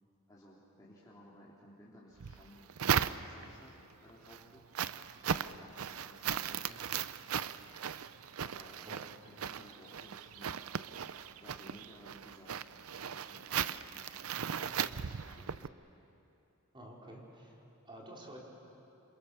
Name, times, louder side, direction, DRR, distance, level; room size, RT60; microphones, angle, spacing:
voice 1, 0.3-4.8 5.2-6.8 8.4-8.9 9.2-10.8 11.4-14.1 14.6-15.7, equal, 15° left, -7 dB, 3.3 m, -57 dB
sound 1, 2.2-3.6 4.1-15.7, right 8 dB, 80° right, 0.6 m, -37 dB
voice 2, 16.7-18.4, right 1 dB, 25° right, -3 dB, 4.5 m, -51 dB
28.0 x 27.0 x 6.9 m, 2.8 s
head